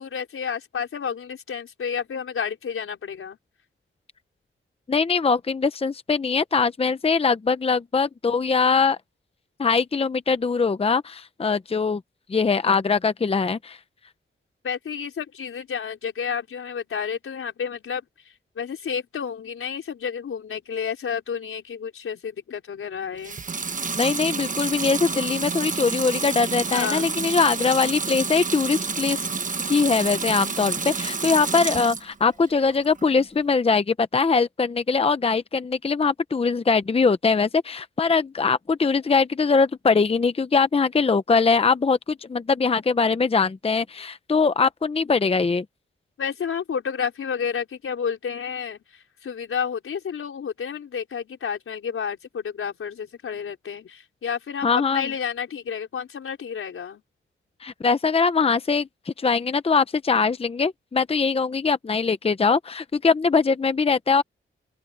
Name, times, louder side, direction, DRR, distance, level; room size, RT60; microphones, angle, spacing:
voice 1, 0.0-3.4 14.6-23.4 26.7-27.1 46.2-57.0, left 7 dB, 85° left, 4.4 m, -31 dB
voice 2, 4.9-9.0 9.6-12.0 12.3-13.8 24.0-29.2 29.7-45.6 54.6-55.0 57.6-64.2, left 4 dB, 30° left, 0.7 m, -22 dB
Water tap faucet / Sink (filling or washing) / Liquid, 23.2-32.1 32.5-33.2, right 4 dB, 40° right, 1.2 m, -29 dB
open air
wide cardioid pair, 110°, 21 cm